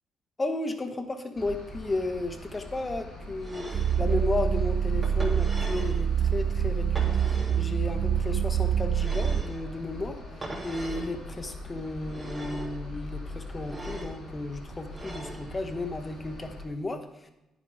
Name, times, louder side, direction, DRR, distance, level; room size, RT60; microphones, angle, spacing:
voice 1, 0.4-10.2 10.6-17.3, left 2 dB, 25° left, 7 dB, 1.2 m, -34 dB
sound 1, 1.3-16.6, left 2 dB, 85° left, 3.2 m, -42 dB
sound 2, 3.4-4.0 5.0-6.0 6.9-7.7 8.9-9.6 10.4-11.1 12.0-12.7 13.6-14.2 14.9-15.4, right 2 dB, 20° right, 2.8 m, -40 dB
sound 3, 3.7-9.4, right 8 dB, 55° right, 0.4 m, -26 dB
10.0 x 9.3 x 3.6 m, 0.96 s
cardioid pair, 90°, 0 cm